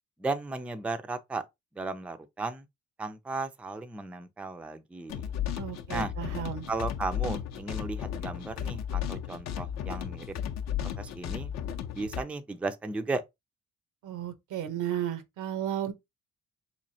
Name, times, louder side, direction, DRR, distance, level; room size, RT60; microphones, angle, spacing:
voice 1, 0.2-1.4 1.8-2.6 3.0-5.3 5.9-6.1 6.7-10.2 11.0-11.5 12.0-13.2, right 3 dB, 5° right, 0.3 m, -35 dB
sound 1, 5.1-12.2, left 9 dB, 60° left, 0.6 m, -34 dB
voice 2, 5.6-6.7 14.0-15.9, right 10 dB, 80° right, 0.7 m, -34 dB
3.4 x 3.0 x 2.7 m
cardioid pair, 90°, 30 cm